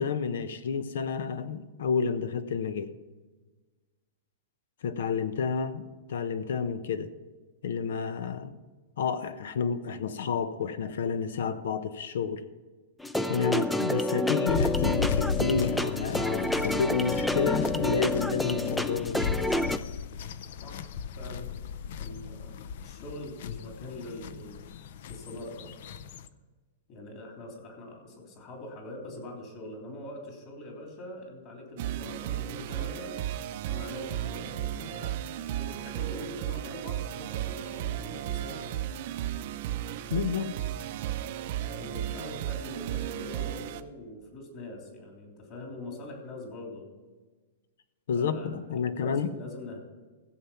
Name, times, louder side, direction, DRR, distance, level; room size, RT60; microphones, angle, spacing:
voice 1, 0.0-2.9 4.8-5.8 6.1-7.1 7.6-8.5 9.0-12.5 13.3-19.5 40.1-40.5 48.1-49.3, left 6 dB, 75° left, 13 dB, 0.9 m, -30 dB
sound 1, 13.0-19.8, left 1 dB, 5° left, 0.4 m, -29 dB
sound 2, 14.5-26.3, left 7 dB, 55° left, 0.6 m, -36 dB
voice 2, 21.2-21.5 21.9-22.5 22.8-24.6 25.1-25.7 26.9-33.2 33.7-35.2 35.4-39.0 41.5-46.9 48.1-49.8, left 1 dB, 35° left, 1 dB, 3.4 m, -43 dB
sound 3, 31.8-43.8, right 12 dB, 50° right, 0.6 m, -34 dB
15.0 x 7.5 x 5.7 m, 1.3 s
supercardioid pair, 160°, 0 cm